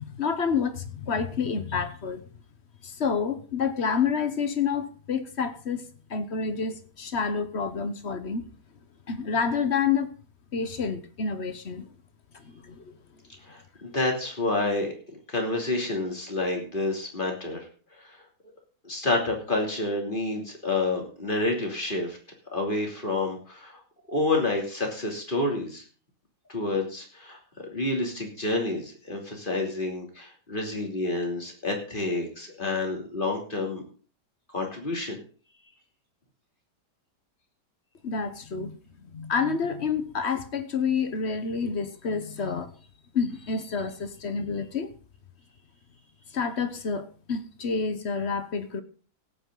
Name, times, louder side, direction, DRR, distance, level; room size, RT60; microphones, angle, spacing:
voice 1, 0.0-2.2 2.8-5.8 6.1-8.5 9.1-10.1 10.5-11.9 12.3-12.9 38.0-38.8 39.1-42.7 43.1-44.9 46.3-48.8, left 5 dB, 45° left, 10 dB, 1.2 m, -28 dB
voice 2, 13.5-14.9 15.3-17.6 18.8-22.2 22.5-23.8 24.1-25.8 26.5-27.4 27.7-33.8 34.5-35.2, left 2 dB, 30° left, 1 dB, 3.2 m, -29 dB
17.5 x 8.7 x 3.9 m, 0.39 s
omnidirectional pair, 1.8 m